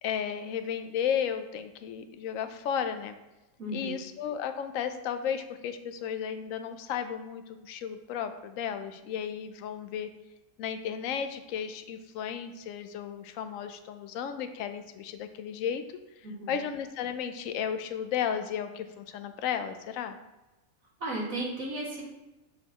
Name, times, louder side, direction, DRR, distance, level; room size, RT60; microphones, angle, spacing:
voice 1, 0.0-3.1 3.7-10.1 10.6-15.8 16.5-20.2, left 8 dB, 75° left, 9 dB, 1.0 m, -34 dB
voice 2, 3.6-4.0 16.2-16.6 21.0-22.0, right 1 dB, 75° right, -4 dB, 2.4 m, -35 dB
12.5 x 4.3 x 2.9 m, 1.0 s
omnidirectional pair, 1.4 m